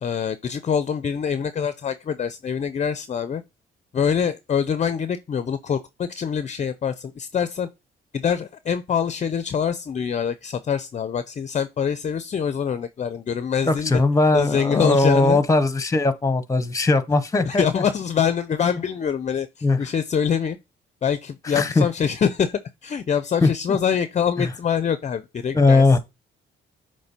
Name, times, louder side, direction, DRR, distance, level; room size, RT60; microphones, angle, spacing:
voice 1, 0.0-3.4 3.9-7.7 8.1-14.0 14.3-15.4 17.4-20.6 21.0-25.8, left 7 dB, 35° left, 0.5 m, -25 dB
voice 2, 13.6-17.8 19.6-19.8 21.4-21.9 23.4-23.8 24.4-24.5 25.5-26.0, left 3 dB, 15° left, 0.8 m, -19 dB
7.9 x 3.2 x 4.2 m
cardioid pair, 90°, 20 cm